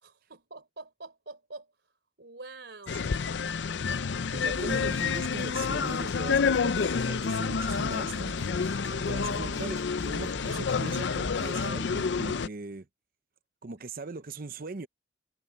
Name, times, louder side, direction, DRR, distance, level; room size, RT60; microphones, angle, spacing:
voice 1, 0.0-1.7 2.2-3.2 8.8-9.2 9.6-9.7 14.6-14.7, right 3 dB, 65° right, 4.3 m, -46 dB
sound 1, 2.9-12.5, left 5 dB, 65° left, 0.5 m, -29 dB
voice 2, 4.3-8.4 9.1-12.9 13.6-14.9, right 3 dB, 50° right, 0.7 m, -40 dB
sound 2, 4.4-11.7, right 1 dB, 20° right, 2.4 m, -45 dB
head